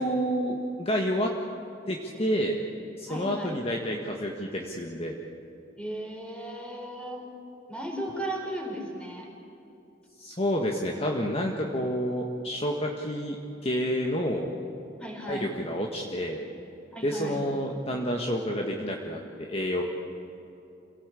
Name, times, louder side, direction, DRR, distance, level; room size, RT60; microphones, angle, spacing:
voice 1, 0.0-1.3 1.9-2.6 3.0-5.1 10.2-13.4 13.6-14.5 15.3-16.4 17.0-19.8, equal, 35° left, 1 dB, 1.6 m, -29 dB
voice 2, 3.1-3.6 5.8-7.2 7.7-9.3 15.0-15.5 16.9-17.4, right 1 dB, 5° left, 0 dB, 4.7 m, -36 dB
27.0 x 17.0 x 8.5 m, 2.9 s
head